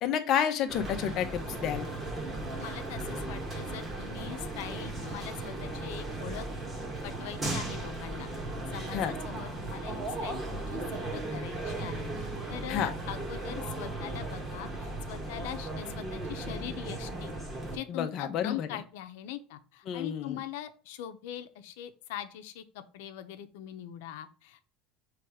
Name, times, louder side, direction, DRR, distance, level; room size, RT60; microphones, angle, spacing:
voice 1, 0.0-1.9 8.9-9.1 12.7-12.9 17.9-18.8 19.9-20.4, left 9 dB, 45° left, 7 dB, 0.8 m, -30 dB
sound 1, 0.7-17.8, right 2 dB, 15° right, 1.4 m, -36 dB
voice 2, 2.6-6.4 7.0-8.3 8.7-17.3 17.7-24.7, left 11 dB, 85° left, 9 dB, 0.8 m, -42 dB
6.3 x 3.3 x 4.9 m, 0.38 s
cardioid pair, 155°, 0 cm